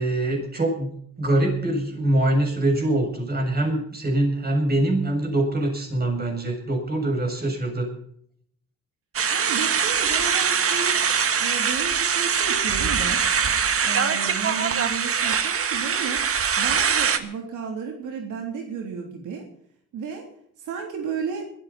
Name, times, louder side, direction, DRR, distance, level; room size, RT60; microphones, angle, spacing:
voice 1, 0.0-7.9, right 1 dB, 30° right, 2 dB, 7.5 m, -24 dB
sound 1, 9.1-17.2, right 6 dB, 50° right, 1.8 m, -23 dB
voice 2, 9.3-11.0 11.4-13.2 13.8-16.3 16.6-19.5 19.9-20.3 20.6-21.5, right 6 dB, 85° right, 2 dB, 3.5 m, -33 dB
20.5 x 15.0 x 4.3 m, 0.65 s
cardioid pair, 90°, 30 cm